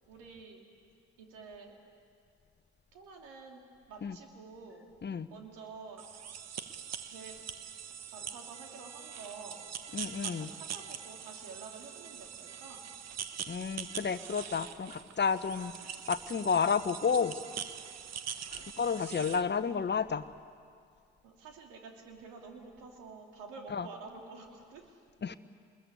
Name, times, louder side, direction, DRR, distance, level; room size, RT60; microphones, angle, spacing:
voice 1, 0.1-0.6 1.2-1.7 2.9-4.9 5.3-6.0 7.0-7.3 8.1-9.6 10.2-12.9 15.8-16.0 18.6-18.7 21.2-25.0, right 4 dB, 70° right, 2 dB, 3.1 m, -49 dB
sound 1, 6.0-19.4, right 8 dB, 50° right, 1.3 m, -43 dB
voice 2, 9.9-10.5 13.5-15.7 16.1-17.3 18.5-20.2 23.7-23.9 25.2-25.4, left 6 dB, 35° left, 13 dB, 1.1 m, -31 dB
25.5 x 21.0 x 8.5 m, 2.3 s
hypercardioid pair, 45°, 33 cm